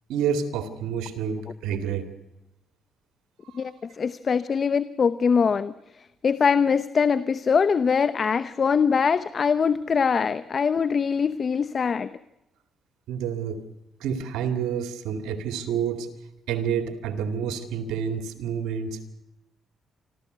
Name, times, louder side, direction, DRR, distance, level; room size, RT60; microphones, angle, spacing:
voice 1, 0.1-2.1 3.4-3.7 13.1-13.6 14.0-16.1 16.5-19.0, right 7 dB, 90° right, 7 dB, 2.3 m, -29 dB
voice 2, 3.5-5.7 6.2-12.1, left 6 dB, 45° left, 14 dB, 0.7 m, -23 dB
27.5 x 13.5 x 8.0 m, 0.92 s
cardioid pair, 90°, 0 cm